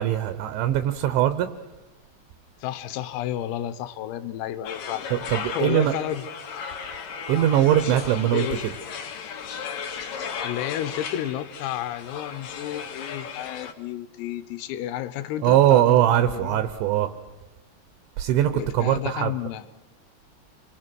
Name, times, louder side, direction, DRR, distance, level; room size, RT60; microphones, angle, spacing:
voice 1, 0.0-1.5 5.1-5.9 7.3-8.4 15.4-17.1 18.2-19.3, right 12 dB, 75° right, 10 dB, 3.1 m, -21 dB
voice 2, 2.6-6.2 8.3-8.7 10.4-16.0 16.3-16.7 18.5-19.7, left 12 dB, 90° left, 12 dB, 3.8 m, -31 dB
sound 1, 4.6-13.7, left 7 dB, 55° left, 2.9 m, -35 dB
28.0 x 24.0 x 6.1 m, 1.1 s
omnidirectional pair, 5.9 m